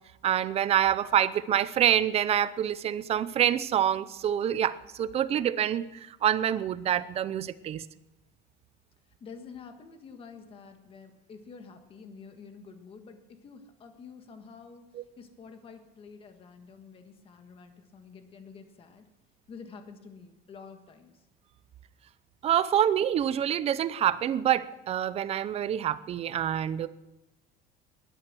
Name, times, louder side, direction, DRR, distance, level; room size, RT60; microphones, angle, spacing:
voice 1, 0.2-7.8 14.9-15.0 22.4-26.9, right 10 dB, 30° right, 15 dB, 0.6 m, -26 dB
voice 2, 9.2-19.1 19.5-21.2, left 5 dB, 25° left, 6 dB, 1.6 m, -48 dB
19.0 x 12.0 x 6.2 m, 0.98 s
cardioid pair, 170°, 21 cm